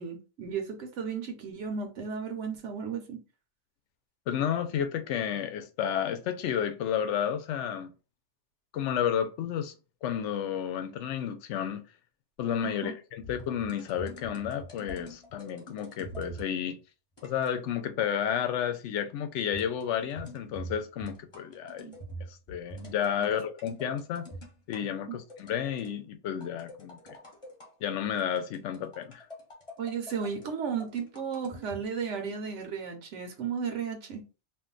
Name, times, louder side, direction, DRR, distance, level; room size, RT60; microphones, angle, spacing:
voice 1, 0.0-3.2 12.6-12.9 25.1-25.2 29.8-34.2, right 6 dB, 85° right, 1.0 m, -34 dB
voice 2, 4.3-7.9 8.7-9.7 10.0-11.9 12.4-16.8 17.2-21.9 22.3-24.3 24.7-27.0 27.8-29.3, left 9 dB, 80° left, 0.9 m, -31 dB
sound 1, 13.2-16.6 17.2-17.6 19.5-24.8 25.3-25.9 26.4-27.7 28.2-31.8, right 1 dB, 30° left, 1.0 m, -45 dB
2.6 x 2.2 x 3.7 m
omnidirectional pair, 1.2 m